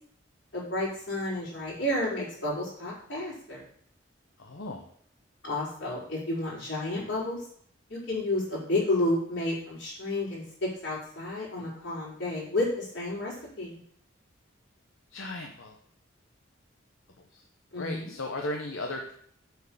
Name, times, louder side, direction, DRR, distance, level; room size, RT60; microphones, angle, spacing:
voice 1, 0.5-3.6 5.4-7.4 7.9-13.8 17.7-18.1, left 1 dB, 60° left, -7 dB, 4.6 m, -31 dB
voice 2, 4.4-4.8 15.1-15.8 17.3-17.4 17.7-19.1, left 2 dB, 80° left, 2 dB, 0.9 m, -36 dB
7.8 x 4.7 x 7.0 m, 0.62 s
head